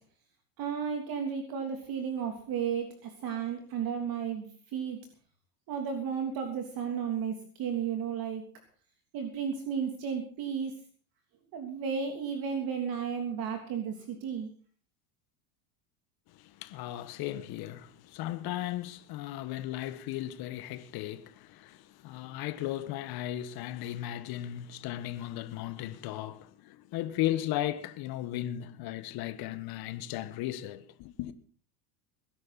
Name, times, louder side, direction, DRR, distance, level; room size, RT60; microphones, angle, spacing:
voice 1, 0.6-5.0 5.7-8.4 9.1-10.7 11.5-14.5, right 7 dB, 45° right, 3.2 m, -33 dB
voice 2, 16.3-31.3, left 13 dB, 50° left, 1.6 m, -36 dB
21.0 x 11.5 x 4.2 m
supercardioid pair, 120°, 48 cm